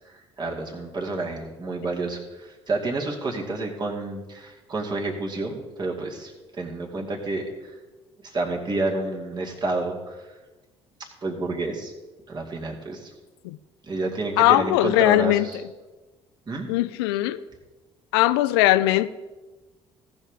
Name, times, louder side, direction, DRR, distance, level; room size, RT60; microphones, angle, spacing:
voice 1, 0.0-7.8 8.2-10.3 11.2-11.9 12.3-13.1 13.8-15.6 16.5-16.7, right 2 dB, 35° right, 0 dB, 2.4 m, -29 dB
voice 2, 14.4-15.5 16.7-17.4 18.1-19.1, left 16 dB, 70° left, 15 dB, 0.4 m, -19 dB
17.5 x 6.5 x 3.6 m, 1.2 s
figure-of-eight pair, 50°, 14 cm